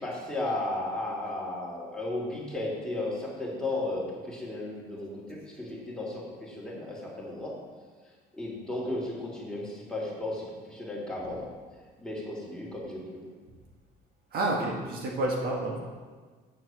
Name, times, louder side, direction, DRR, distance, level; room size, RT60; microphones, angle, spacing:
voice 1, 0.0-7.5 8.3-11.4 12.0-13.2, left 2 dB, 5° left, -5 dB, 2.6 m, -34 dB
voice 2, 14.3-15.8, right 2 dB, 65° right, -1 dB, 1.6 m, -29 dB
9.0 x 4.6 x 6.2 m, 1.5 s
cardioid pair, 110°, 17 cm